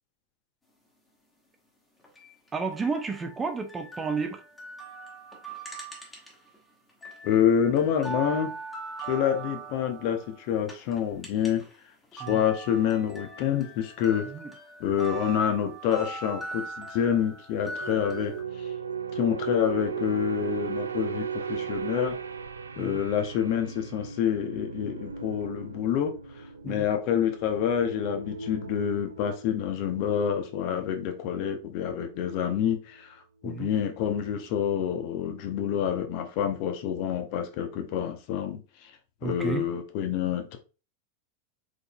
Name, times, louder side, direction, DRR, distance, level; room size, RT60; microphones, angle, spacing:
sound 1, 2.0-6.6 6.9-11.8 12.0-18.4, right 3 dB, 10° left, 1.4 m, -41 dB
voice 1, 2.5-4.4 12.2-12.4 14.3-14.5 22.8-23.0 26.6-26.9 33.4-33.7 39.2-39.6, right 5 dB, 15° right, 0.7 m, -32 dB
voice 2, 7.2-8.5 9.1-11.6 12.1-14.3 14.8-18.3 19.2-22.2 22.8-26.1 26.6-33.1 33.4-38.6 39.2-40.6, left 9 dB, 45° left, 0.8 m, -27 dB
sound 2, 17.8-32.4 32.7-33.0, right 6 dB, 75° right, 0.3 m, -37 dB
4.7 x 3.9 x 2.4 m
figure-of-eight pair, 90°, 0 cm